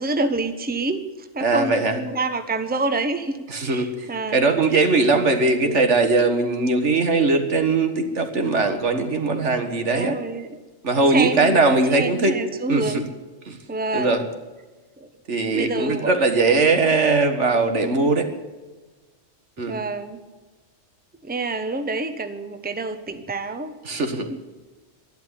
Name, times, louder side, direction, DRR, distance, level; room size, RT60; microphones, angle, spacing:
voice 1, 0.0-4.5 9.9-10.6 11.1-13.1 13.7-14.3 15.0-15.1 15.5-16.1 19.7-20.2 21.2-23.7 24.3-24.4, right 3 dB, 10° right, 8 dB, 1.0 m, -27 dB
voice 2, 1.4-2.0 3.5-10.2 10.8-12.4 12.7-13.0 13.5-13.6 13.9-14.2 15.3-18.3 19.6-19.8 23.9-24.3, right 3 dB, 75° right, 6 dB, 2.0 m, -20 dB
12.5 x 11.5 x 9.9 m, 1.3 s
omnidirectional pair, 1.2 m